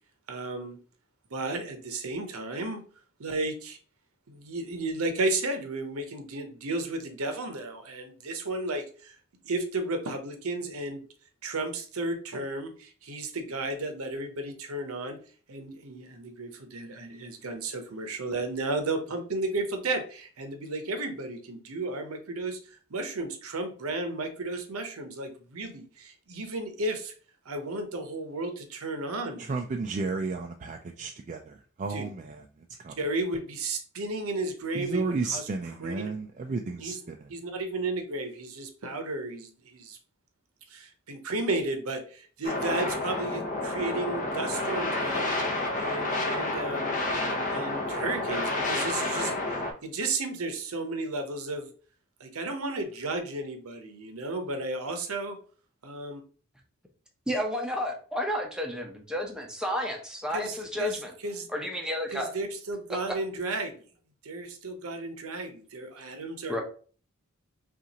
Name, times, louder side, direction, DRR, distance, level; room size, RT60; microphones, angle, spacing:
voice 1, 0.3-0.8 1.3-2.8 3.2-3.8 4.3-9.2 9.4-11.0 11.4-15.2 15.5-27.1 27.5-29.5 31.9-32.0 33.0-35.5 35.8-36.1 36.8-37.0 37.3-40.0 40.7-45.3 45.7-49.3 49.8-51.7 52.2-55.4 55.8-56.2 60.3-61.5 62.1-63.9 64.2-66.6, right 2 dB, 90° right, 6 dB, 0.8 m, -33 dB
voice 2, 29.4-32.4 32.8-33.0 34.7-37.3, right 3 dB, 35° right, 3 dB, 0.3 m, -33 dB
sound 1, 42.4-49.7, left 2 dB, 40° left, 0.9 m, -30 dB
voice 3, 57.3-61.1 61.5-62.3 66.5-66.6, equal, 5° right, 1 dB, 0.7 m, -31 dB
5.5 x 2.5 x 2.9 m, 0.41 s
head